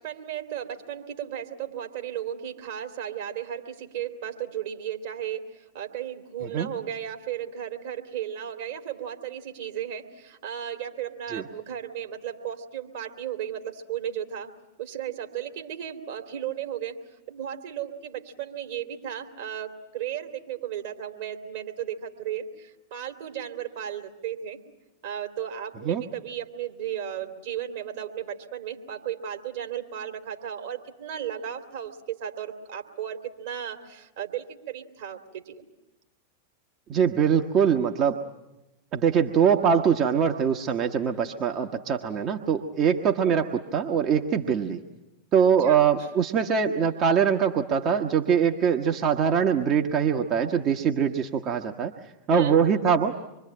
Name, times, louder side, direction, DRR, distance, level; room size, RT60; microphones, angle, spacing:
voice 1, 0.0-14.5 14.8-17.0 17.3-24.6 25.0-35.6 45.6-45.8 52.3-52.6, right 10 dB, 55° right, 5 dB, 2.7 m, -35 dB
voice 2, 36.9-38.2 38.9-44.8 45.3-51.9 52.3-53.1, right 7 dB, 35° right, 4 dB, 1.2 m, -23 dB
25.5 x 23.5 x 8.8 m, 0.95 s
figure-of-eight pair, 90°, 0 cm